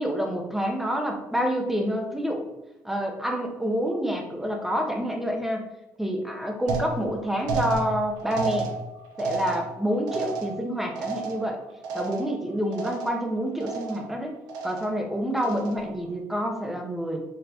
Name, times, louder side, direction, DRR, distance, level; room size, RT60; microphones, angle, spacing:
voice 1, 0.0-2.5 2.8-5.7 6.0-8.7 9.2-11.6 11.9-14.3 14.6-17.2, equal, 5° right, 2 dB, 0.7 m, -28 dB
sound 1, 6.7-12.5 12.7-13.3 13.6-14.2 14.5-15.0 15.4-15.9, right 4 dB, 85° right, 0.8 m, -32 dB
4.3 x 3.1 x 2.7 m, 0.97 s
cardioid pair, 110°, 7 cm